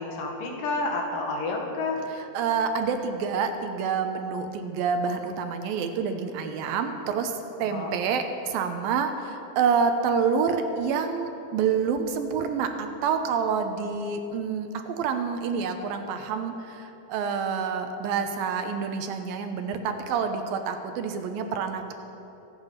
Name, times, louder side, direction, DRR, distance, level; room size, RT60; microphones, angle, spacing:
voice 1, 0.0-2.0 7.7-7.9, left 3 dB, 65° left, 0 dB, 3.3 m, -30 dB
voice 2, 2.3-21.9, right 6 dB, 75° right, 7 dB, 2.5 m, -27 dB
24.5 x 8.7 x 5.7 m, 3.0 s
omnidirectional pair, 4.4 m